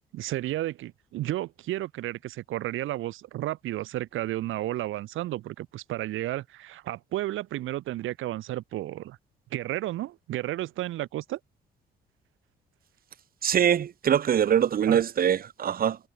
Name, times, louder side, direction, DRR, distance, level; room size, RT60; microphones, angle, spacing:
voice 1, 0.1-9.2 9.5-11.4 14.9-15.0, right 15 dB, 85° right, 5.5 m, -32 dB
voice 2, 13.4-16.0, right 9 dB, 45° right, 0.7 m, -23 dB
cardioid pair, 90°, 20 cm